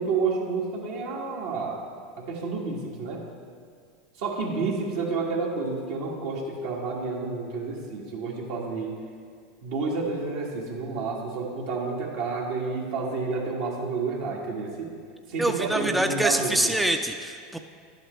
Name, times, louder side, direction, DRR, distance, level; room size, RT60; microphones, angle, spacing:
voice 1, 0.0-1.8 2.2-3.2 4.2-8.9 9.6-14.9 15.3-16.8, right 4 dB, 70° right, -2 dB, 1.7 m, -30 dB
voice 2, 15.4-17.6, right 1 dB, 5° right, 5 dB, 0.4 m, -25 dB
10.5 x 7.7 x 3.2 m, 2.2 s
hypercardioid pair, 90°, 0 cm